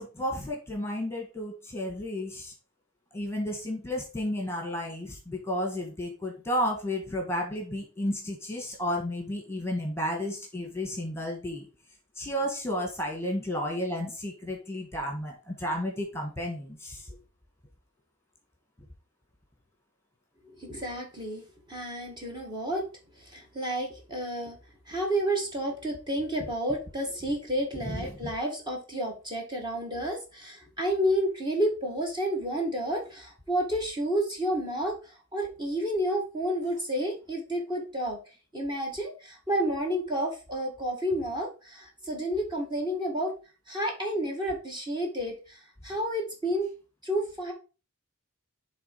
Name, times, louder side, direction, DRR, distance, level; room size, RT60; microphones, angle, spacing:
voice 1, 0.0-2.5 3.1-11.7 12.2-17.2 27.8-28.3, left 1 dB, 10° left, 2 dB, 1.7 m, -32 dB
voice 2, 20.4-22.9 23.2-24.6 24.9-38.2 38.5-43.3 43.7-46.7 47.0-47.5, equal, 20° right, 1 dB, 1.9 m, -30 dB
7.6 x 3.6 x 5.4 m, 0.32 s
head